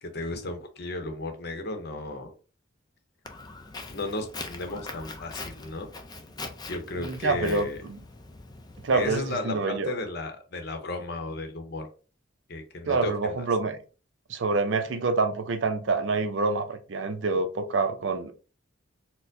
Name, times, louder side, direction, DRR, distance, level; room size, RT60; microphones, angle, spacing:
voice 1, 0.0-2.3 3.9-5.9 6.6-7.8 8.9-11.9 12.5-13.5, left 2 dB, 55° left, 0.7 m, -34 dB
Walk footsteps, 3.2-9.3, left 3 dB, 20° left, 0.4 m, -42 dB
voice 2, 7.0-8.0 8.8-9.9 12.9-13.8 14.3-18.3, right 3 dB, 70° right, 0.5 m, -27 dB
4.3 x 2.1 x 2.6 m
head